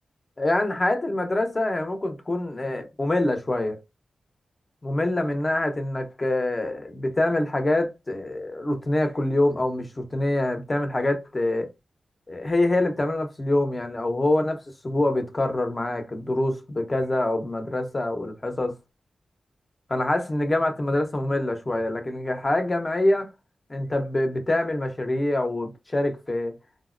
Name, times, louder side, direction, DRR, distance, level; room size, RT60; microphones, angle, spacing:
voice 1, 0.4-3.8 4.8-11.7 12.3-18.8 19.9-23.3 23.7-26.6, left 1 dB, 35° left, 0.8 m, -25 dB
3.8 x 2.0 x 2.5 m
cardioid pair, 50°, 0 cm